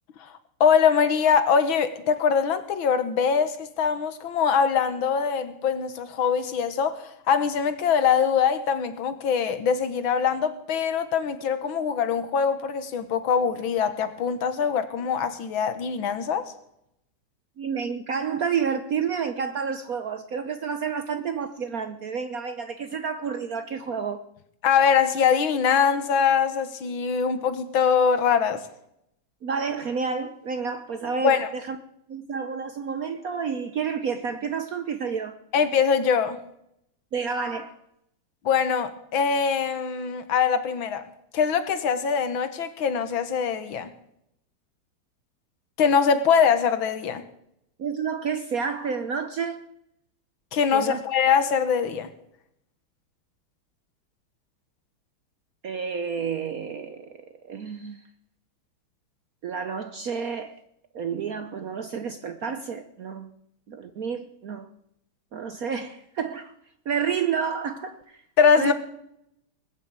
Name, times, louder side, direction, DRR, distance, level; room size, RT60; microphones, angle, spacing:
voice 1, 0.6-16.5 24.6-28.6 31.2-31.5 35.5-36.4 38.5-41.0 41.3-43.9 45.8-47.2 50.5-52.1 68.4-68.7, left 6 dB, 70° left, 1.9 m, -23 dB
voice 2, 17.6-24.2 29.4-31.8 32.1-35.4 37.1-37.8 47.8-49.6 50.7-51.0 55.6-57.1 57.4-58.0 59.4-60.6 60.9-63.3 63.7-64.7 65.3-66.5 66.9-68.2 68.6-68.7, right 6 dB, 60° right, 1.0 m, -30 dB
20.0 x 7.0 x 9.0 m
omnidirectional pair, 2.3 m